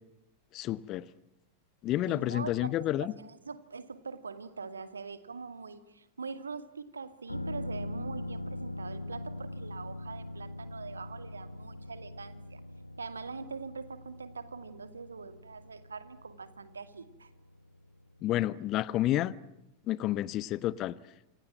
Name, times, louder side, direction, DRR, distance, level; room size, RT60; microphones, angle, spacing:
voice 1, 0.5-1.0 1.8-3.1 18.2-19.3 19.9-20.9, left 14 dB, 35° left, 1.2 m, -30 dB
voice 2, 2.1-12.6 13.0-17.3, right 5 dB, 75° right, 2.3 m, -43 dB
sound 1, 7.3-18.8 19.2-19.3, left 1 dB, 85° left, 1.0 m, -42 dB
28.5 x 27.0 x 7.7 m
figure-of-eight pair, 90°, 0 cm